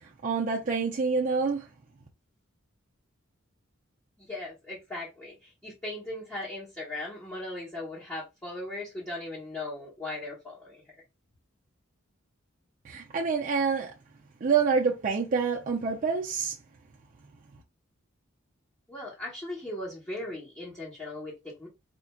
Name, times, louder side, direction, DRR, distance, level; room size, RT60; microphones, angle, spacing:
voice 1, 0.2-1.7 12.8-13.9 14.4-16.6, right 5 dB, 40° right, 0.5 m, -27 dB
voice 2, 4.2-10.8 18.9-21.7, left 2 dB, 10° left, 1.1 m, -38 dB
4.3 x 2.6 x 2.2 m
head